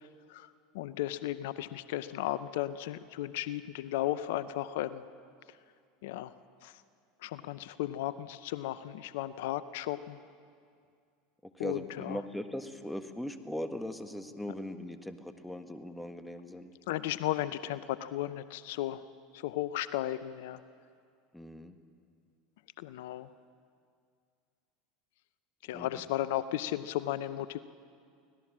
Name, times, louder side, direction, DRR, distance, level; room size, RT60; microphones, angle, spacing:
voice 1, 0.7-5.0 6.0-6.3 6.6-6.7 7.2-10.2 11.6-12.2 16.9-19.0 19.3-20.6 22.8-23.3 25.7-27.6, left 13 dB, 70° left, 15 dB, 0.6 m, -35 dB
voice 2, 11.4-16.7 21.3-21.8 25.7-26.0, left 1 dB, 5° left, 8 dB, 1.5 m, -40 dB
24.0 x 18.0 x 7.4 m, 2.3 s
hypercardioid pair, 90°, 0 cm